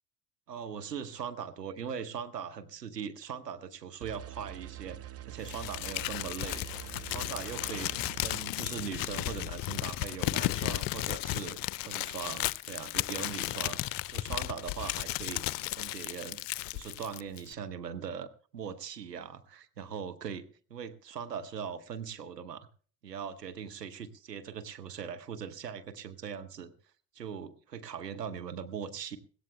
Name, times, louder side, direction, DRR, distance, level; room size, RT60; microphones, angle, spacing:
voice 1, 0.5-5.0 5.3-6.7 7.1-11.6 11.8-15.4 15.7-22.7 23.0-26.7 27.1-29.2, right 7 dB, 90° right, 10 dB, 0.8 m, -40 dB
sound 1, 4.0-8.4, right 13 dB, 30° right, 0.7 m, -45 dB
Crumpling crinkling, 5.5-17.5, left 18 dB, 50° left, 0.5 m, -34 dB
21.0 x 16.5 x 2.2 m, 0.43 s
figure-of-eight pair, 55°, 48 cm